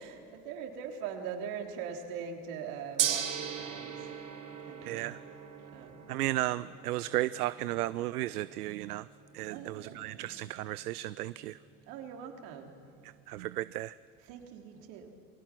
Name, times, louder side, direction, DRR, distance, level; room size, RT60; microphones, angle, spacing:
voice 1, 0.0-4.0 4.7-5.1 5.7-6.1 9.5-10.3 11.9-12.7 14.3-15.1, right 7 dB, 60° right, 3 dB, 3.6 m, -42 dB
Gong, 3.0-13.2, right 9 dB, 45° right, 3.2 m, -40 dB
voice 2, 4.8-5.2 6.1-9.1 9.3-11.6 13.0-13.9, right 16 dB, 80° right, 17 dB, 0.6 m, -34 dB
28.5 x 20.5 x 6.1 m, 2.6 s
hypercardioid pair, 80°, 45 cm